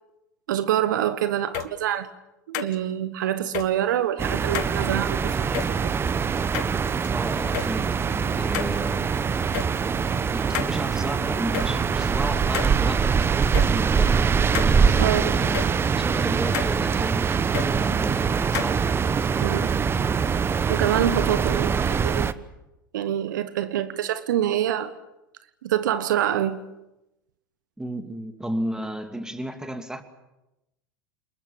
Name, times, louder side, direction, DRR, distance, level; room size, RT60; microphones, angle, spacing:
voice 1, 0.5-2.1 2.5-5.9 15.0-15.4 19.4-19.7 20.7-22.3 22.9-24.9 25.6-26.6, right 11 dB, 65° right, 13 dB, 1.3 m, -26 dB
sound 1, 1.5-1.7 2.5-2.8 3.5-3.7 4.5-4.7 5.5-5.7 6.5-7.1 7.5-7.7 8.5-8.8 9.5-9.7 10.5-10.7 11.5-11.7 12.5-12.8 13.5-13.7 14.5-14.7 15.5-15.7 16.5-16.8 17.5-17.7 18.5-18.7, left 16 dB, 55° left, 1.8 m, -30 dB
sound 2, 4.2-22.3, right 6 dB, 20° right, 1.0 m, -23 dB
voice 2, 7.1-9.2 10.3-15.6 16.0-18.8 27.8-30.0, right 1 dB, 5° right, 7 dB, 2.7 m, -33 dB
28.5 x 21.0 x 7.3 m, 0.94 s
figure-of-eight pair, 85°, 11 cm